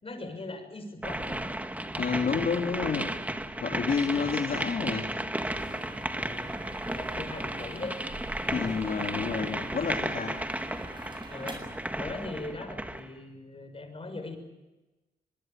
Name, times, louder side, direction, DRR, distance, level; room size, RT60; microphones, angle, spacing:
voice 1, 0.0-1.5 6.2-6.5 6.8-8.0 8.4-8.8 11.3-11.7 12.0-14.4, left 2 dB, 35° left, 7 dB, 6.6 m, -40 dB
sound 1, 1.0-13.1, right 1 dB, 10° right, 1.8 m, -34 dB
voice 2, 2.0-3.2 3.6-5.1 8.5-10.5, left 5 dB, 60° left, 2 dB, 2.6 m, -29 dB
sound 2, 5.4-12.5, right 2 dB, 30° right, 7.6 m, -46 dB
24.5 x 22.0 x 8.9 m, 1.1 s
cardioid pair, 80°, 17 cm